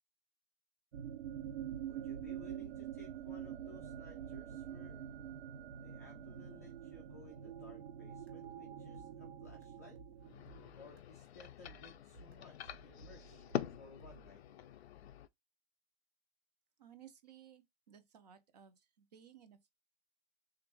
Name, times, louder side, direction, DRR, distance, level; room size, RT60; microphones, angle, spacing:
sound 1, 0.9-10.7, right 9 dB, 85° right, 0.7 m, -46 dB
voice 1, 1.8-5.1 5.8-10.0 10.7-14.4, left 4 dB, 15° left, 0.3 m, -59 dB
sound 2, 8.1-11.2 11.6-14.3, right 2 dB, 55° right, 1.2 m, -59 dB
sound 3, 10.2-15.3, left 11 dB, 80° left, 0.6 m, -45 dB
voice 2, 16.8-19.7, right 9 dB, 40° right, 0.7 m, -59 dB
3.4 x 2.5 x 4.5 m
hypercardioid pair, 175°, 32 cm